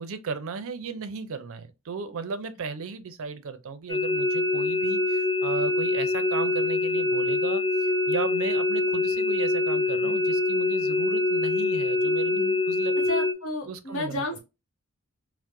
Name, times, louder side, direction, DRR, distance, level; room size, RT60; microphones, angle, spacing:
voice 1, 0.0-12.4 12.7-12.9 13.7-14.2, right 5 dB, 65° right, 0.5 m, -35 dB
sound 1, 3.9-13.3, left 2 dB, 15° left, 0.5 m, -25 dB
voice 2, 13.0-14.4, left 2 dB, 60° left, 1.1 m, -32 dB
4.5 x 2.0 x 2.5 m
head